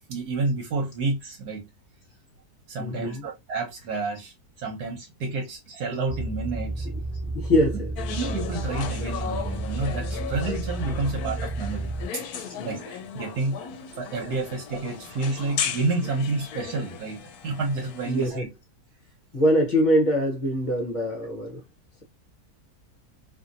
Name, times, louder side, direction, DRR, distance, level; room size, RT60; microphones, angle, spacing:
voice 1, 0.1-1.6 2.7-6.9 8.1-13.6 14.0-17.2 17.4-18.5, right 3 dB, 80° right, 1.4 m, -30 dB
voice 2, 2.8-3.3 6.9-8.0 12.5-12.8 13.9-14.0 18.0-18.5 19.3-21.6, equal, 40° left, 0.8 m, -24 dB
sound 1, 6.1-12.1, right 2 dB, 20° right, 0.6 m, -32 dB
sound 2, 8.0-18.3, left 7 dB, 75° left, 1.1 m, -36 dB
2.8 x 2.7 x 2.5 m
omnidirectional pair, 1.7 m